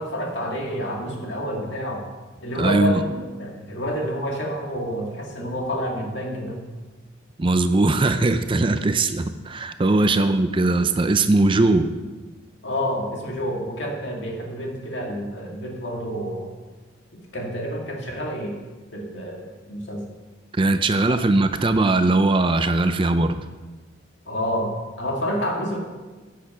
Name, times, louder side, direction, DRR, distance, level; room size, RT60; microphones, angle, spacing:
voice 1, 0.0-2.1 2.4-6.7 10.1-10.3 12.6-16.5 17.1-18.6 18.9-20.0 20.9-21.2 24.3-25.8, equal, 65° left, 0 dB, 2.3 m, -29 dB
voice 2, 2.6-3.0 7.4-11.9 20.5-23.4, right 2 dB, 25° right, 10 dB, 0.5 m, -20 dB
10.5 x 8.6 x 5.6 m, 1.3 s
head